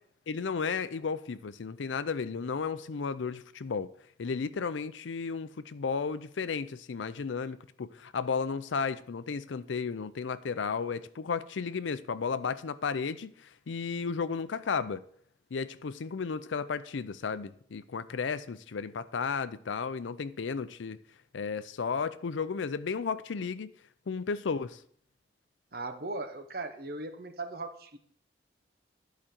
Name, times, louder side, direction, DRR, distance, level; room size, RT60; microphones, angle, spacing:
voice 1, 0.3-3.9 4.2-15.0 15.5-21.0 21.3-23.7 24.1-24.8, left 5 dB, 85° left, 0.5 m, -33 dB
voice 2, 25.7-28.0, right 2 dB, 50° right, 0.9 m, -38 dB
11.5 x 5.1 x 4.4 m
head